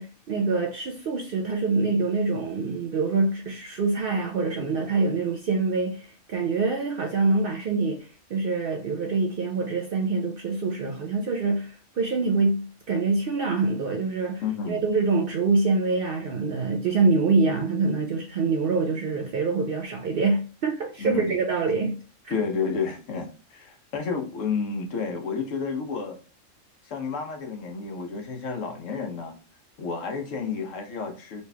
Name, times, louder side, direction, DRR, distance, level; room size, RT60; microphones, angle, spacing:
voice 1, 0.0-22.0 22.2-22.3, right 4 dB, 65° right, 0.6 m, -25 dB
voice 2, 14.4-14.8 21.0-21.3 22.3-26.2 26.9-29.4 29.8-31.4, left 5 dB, 70° left, 1.1 m, -31 dB
4.1 x 3.0 x 2.2 m
omnidirectional pair, 1.4 m